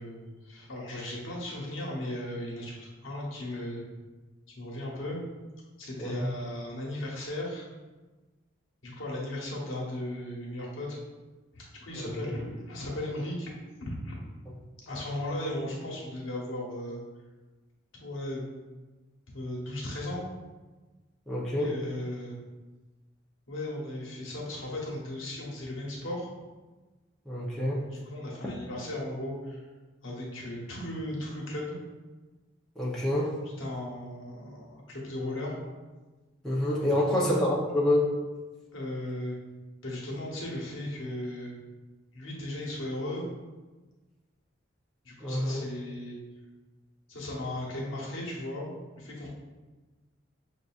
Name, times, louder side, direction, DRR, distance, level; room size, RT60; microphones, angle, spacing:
voice 1, 0.0-3.8 4.5-5.2 5.8-7.7 8.8-11.0 11.5-13.5 13.9-14.2 14.8-17.0 18.0-18.6 19.3-20.2 21.5-22.3 23.5-26.3 27.9-29.6 30.0-31.8 33.6-35.5 37.1-37.3 38.7-39.4 39.8-41.6 42.1-43.3 45.0-46.2 47.1-49.3, left 1 dB, 80° left, -3 dB, 1.0 m, -36 dB
voice 2, 12.0-12.3 21.3-21.7 27.3-27.8 32.8-33.3 36.4-38.1 45.2-45.6, left 1 dB, 5° left, -7 dB, 0.5 m, -27 dB
5.9 x 2.6 x 2.4 m, 1.3 s
head